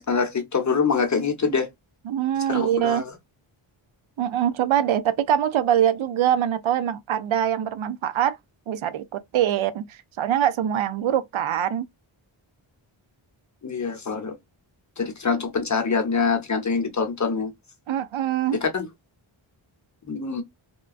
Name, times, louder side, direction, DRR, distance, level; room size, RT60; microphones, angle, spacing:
voice 1, 0.0-1.7 2.5-3.1 13.6-14.3 15.0-17.5 18.5-18.9 20.1-20.4, left 5 dB, 35° left, 0.8 m, -25 dB
voice 2, 2.1-3.0 4.2-8.4 8.7-9.9 10.2-11.9 17.9-18.6, right 10 dB, 75° right, 0.6 m, -23 dB
3.7 x 2.2 x 2.3 m
wide cardioid pair, 135°, 49 cm